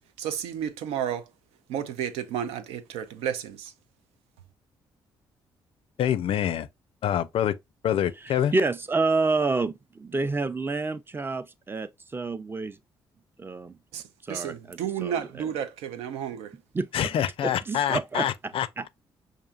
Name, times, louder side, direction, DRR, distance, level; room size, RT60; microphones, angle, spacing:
voice 1, 0.2-1.3 1.7-3.7 13.9-16.5, right 9 dB, 80° right, 0.5 m, -32 dB
voice 2, 6.0-6.7 7.0-7.5 7.8-8.5 16.9-18.9, left 10 dB, 65° left, 0.4 m, -26 dB
voice 3, 8.2-12.8 13.4-13.8 14.2-15.5 16.7-17.1 17.4-18.9, right 3 dB, 20° right, 0.5 m, -29 dB
5.4 x 2.5 x 2.4 m
supercardioid pair, 55°, 10 cm